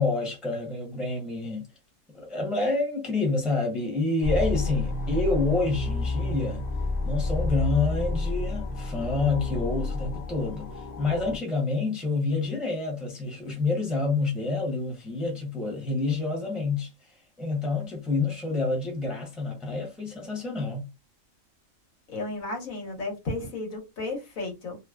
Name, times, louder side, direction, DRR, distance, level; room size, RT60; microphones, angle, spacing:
voice 1, 0.0-1.6 2.1-6.6 7.0-16.9 17.4-20.9, left 3 dB, ahead, 0.7 m, -28 dB
sound 1, 4.2-11.4, left 2 dB, 50° left, 0.5 m, -30 dB
voice 2, 22.1-24.8, left 2 dB, 80° left, 1.4 m, -33 dB
3.0 x 2.1 x 2.3 m
omnidirectional pair, 1.4 m